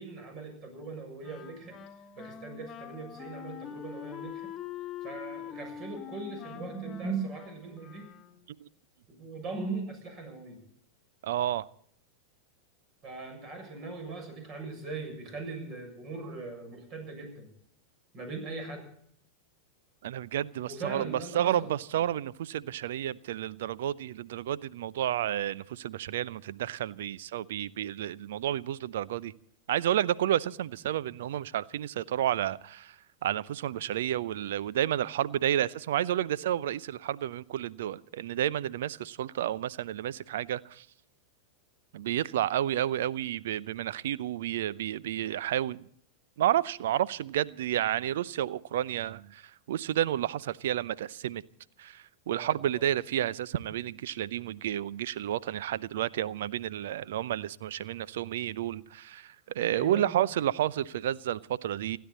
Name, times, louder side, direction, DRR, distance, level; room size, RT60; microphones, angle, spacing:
voice 1, 0.0-1.8 2.2-4.5 5.0-8.1 9.1-10.6 13.0-17.5 18.1-18.9 20.7-21.7 52.3-52.9 59.7-60.2, right 3 dB, 35° right, 6.9 m, -40 dB
Wind instrument woodwind instrument, 1.2-8.6, left 9 dB, 25° left, 1.8 m, -44 dB
voice 2, 11.2-11.7 20.0-29.3 29.7-33.0 33.2-40.8 41.9-45.8 46.4-51.4 51.8-62.0, right 11 dB, 55° right, 0.6 m, -31 dB
29.0 x 10.5 x 4.1 m
figure-of-eight pair, 90°, 0 cm